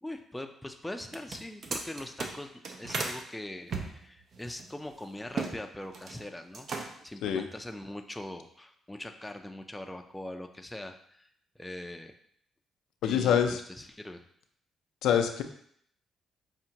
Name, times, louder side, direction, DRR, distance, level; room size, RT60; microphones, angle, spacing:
voice 1, 0.0-6.7 7.0-11.3 11.6-12.1 13.0-14.2, left 1 dB, 10° left, 5 dB, 0.4 m, -42 dB
sound 1, 1.0-3.2 3.7-5.5 5.8-6.2 6.5-7.1, right 4 dB, 55° right, 0.6 m, -36 dB
voice 2, 13.0-13.6 15.0-15.4, left 8 dB, 85° left, 6 dB, 0.3 m, -25 dB
5.6 x 2.5 x 2.8 m, 0.65 s
cardioid pair, 90°, 0 cm